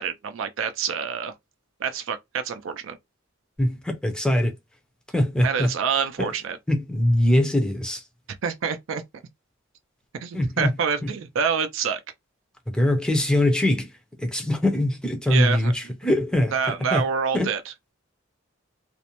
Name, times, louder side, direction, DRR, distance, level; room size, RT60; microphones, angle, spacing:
voice 1, 0.0-1.3 1.8-3.0 5.4-6.6 8.4-9.0 10.2-12.0 15.3-15.7 16.5-17.7, right 6 dB, 65° right, 0.4 m, -27 dB
voice 2, 3.6-4.5 5.1-5.7 6.2-6.3 6.7-8.0 10.3-10.8 11.0-11.1 12.7-13.9 14.2-17.0 17.3-17.5, left 1 dB, 5° left, 0.5 m, -22 dB
2.5 x 2.1 x 2.9 m
head